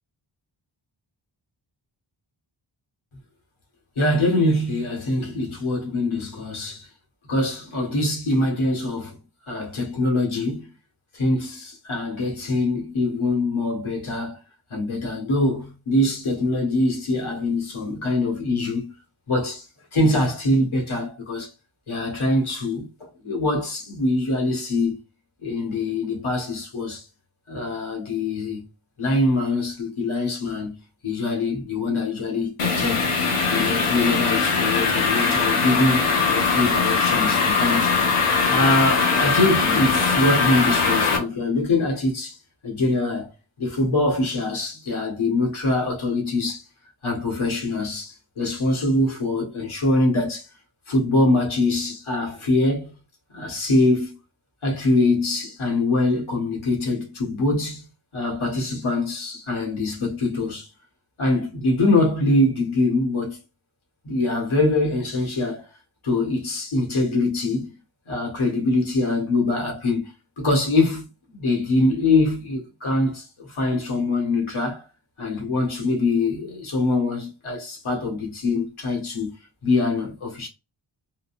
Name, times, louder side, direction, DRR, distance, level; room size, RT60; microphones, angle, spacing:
voice 1, 4.0-6.9 7.3-9.2 9.5-10.7 11.1-14.4 14.7-18.9 19.3-19.7 19.9-21.5 21.9-22.9 23.2-25.0 25.4-27.0 27.5-28.6 29.0-30.8 31.0-33.1 33.5-37.9 38.5-42.4 42.6-43.3 43.6-46.6 47.0-50.5 50.9-52.9 53.3-54.1 54.6-57.8 58.1-60.7 61.2-63.4 64.0-65.6 66.0-67.7 68.1-71.0 71.3-74.8 75.2-79.3 79.6-80.5, left 2 dB, 75° left, 1.8 m, -23 dB
sound 1, 32.6-41.2, left 4 dB, 90° left, 1.0 m, -21 dB
4.0 x 2.4 x 2.5 m
cardioid pair, 45°, 49 cm